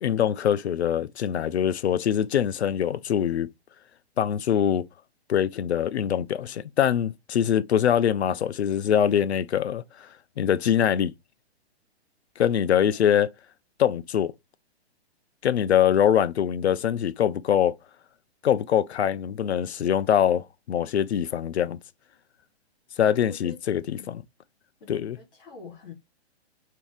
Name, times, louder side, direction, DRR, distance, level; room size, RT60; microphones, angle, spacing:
voice 1, 0.0-3.5 4.2-4.9 5.3-10.1 10.4-11.1 12.4-13.3 13.8-14.3 15.4-17.7 18.4-21.8 23.0-24.2 24.9-25.2, left 9 dB, 80° left, 0.5 m, -23 dB
voice 2, 12.5-13.3 23.0-23.6 24.0-24.2 24.8-25.9, left 5 dB, 55° left, 2.3 m, -47 dB
4.0 x 2.7 x 3.6 m
hypercardioid pair, 125°, 33 cm